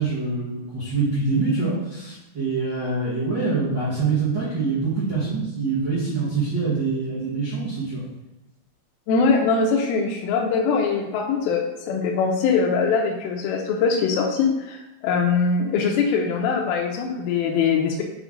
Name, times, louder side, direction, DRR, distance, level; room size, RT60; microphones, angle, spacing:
voice 1, 0.0-8.0, right 4 dB, 70° right, -10 dB, 1.0 m, -25 dB
voice 2, 9.1-18.0, left 5 dB, 80° left, 0 dB, 2.2 m, -22 dB
5.8 x 5.1 x 3.7 m, 0.98 s
omnidirectional pair, 4.8 m